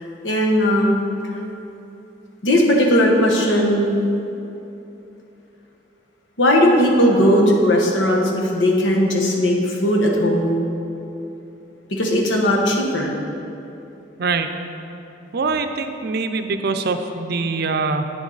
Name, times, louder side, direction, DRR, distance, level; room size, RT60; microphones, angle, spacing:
voice 1, 0.2-0.9 2.4-4.0 6.4-10.6 11.9-13.1, equal, 90° left, -1 dB, 1.3 m, -17 dB
voice 2, 14.2-14.5 15.3-18.1, right 4 dB, 60° right, 7 dB, 0.5 m, -23 dB
9.1 x 7.2 x 3.9 m, 2.9 s
head